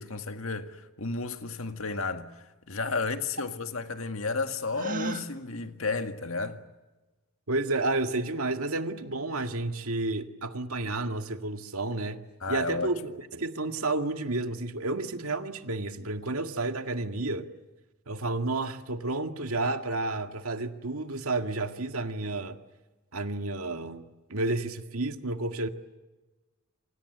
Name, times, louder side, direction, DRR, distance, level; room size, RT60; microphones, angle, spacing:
voice 1, 0.0-6.6 12.4-12.9, left 3 dB, 70° left, 2.0 m, -32 dB
Gasp, 4.7-5.3, right 3 dB, 40° right, 1.6 m, -33 dB
voice 2, 7.5-17.5 18.1-22.6 23.1-25.7, right 2 dB, 90° right, 2.0 m, -31 dB
28.0 x 26.5 x 8.1 m
head